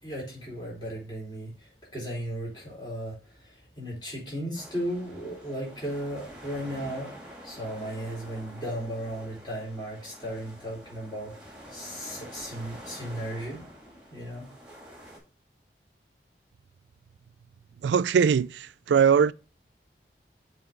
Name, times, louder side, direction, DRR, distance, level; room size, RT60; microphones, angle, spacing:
voice 1, 0.0-7.1 7.4-11.3 11.7-13.6 14.1-14.5, equal, 25° left, 4.0 m, -35 dB
sound 1, 4.5-15.2, equal, 5° right, 2.1 m, -47 dB
voice 2, 17.8-19.3, right 7 dB, 90° right, 0.3 m, -21 dB
7.7 x 4.2 x 3.6 m
head